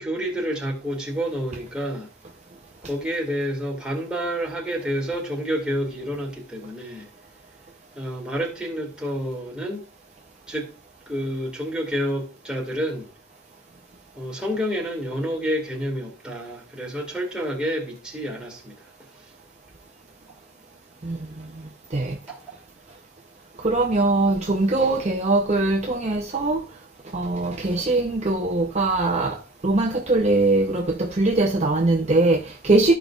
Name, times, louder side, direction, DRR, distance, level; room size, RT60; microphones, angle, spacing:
voice 1, 0.0-2.1 2.8-7.1 8.0-9.8 10.5-10.7 11.1-13.1 14.2-18.7 22.3-22.5, equal, 5° right, 2.1 m, -29 dB
voice 2, 21.0-21.5 21.9-22.2 23.6-26.6 27.1-29.4 29.6-32.9, right 2 dB, 30° right, 0.7 m, -21 dB
14.0 x 5.2 x 2.4 m
head